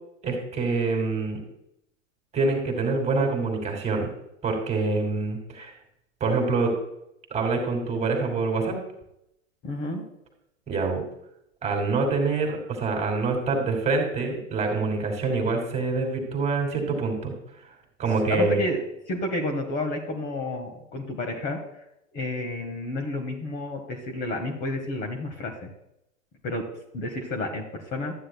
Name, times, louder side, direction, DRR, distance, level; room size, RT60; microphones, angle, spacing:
voice 1, 0.2-1.4 2.3-4.1 4.4-5.7 6.2-6.8 7.3-8.8 10.7-11.0 11.6-17.3 18.0-18.6, right 3 dB, 15° right, 2 dB, 2.5 m, -25 dB
voice 2, 9.6-10.0 18.3-18.8 19.1-21.6 22.1-25.7 26.4-26.6 26.9-28.1, left 1 dB, 25° left, 1 dB, 1.6 m, -30 dB
14.0 x 9.7 x 2.3 m, 0.81 s
figure-of-eight pair, 100°, 39 cm